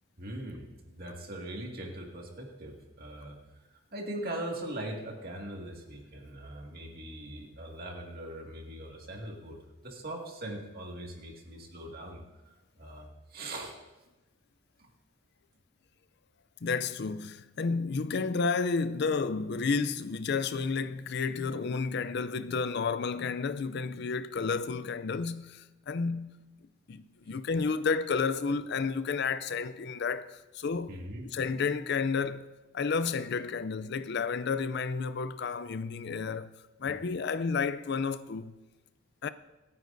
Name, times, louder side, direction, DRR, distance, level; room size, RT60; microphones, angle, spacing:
voice 1, 0.2-3.4 3.7-9.6 9.8-13.8 14.8-14.9 30.9-31.3 36.9-37.0, right 1 dB, 45° right, 2.0 m, -41 dB
voice 2, 16.6-26.3 26.9-31.0 31.2-36.5 36.8-38.6 39.2-39.3, left 5 dB, 50° left, 0.4 m, -31 dB
26.5 x 9.6 x 2.7 m
head